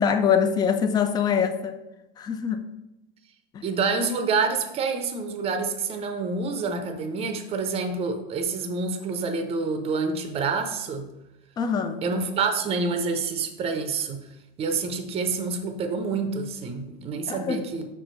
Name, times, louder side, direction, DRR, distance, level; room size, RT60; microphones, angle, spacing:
voice 1, 0.0-1.8 2.2-2.6 3.5-3.6 11.6-12.0 17.3-17.6, left 7 dB, 15° left, 9 dB, 0.3 m, -24 dB
voice 2, 3.6-11.1 12.0-14.3 14.6-17.9, right 4 dB, 20° right, 7 dB, 0.6 m, -27 dB
5.6 x 4.5 x 3.9 m, 0.93 s
hypercardioid pair, 115°, 29 cm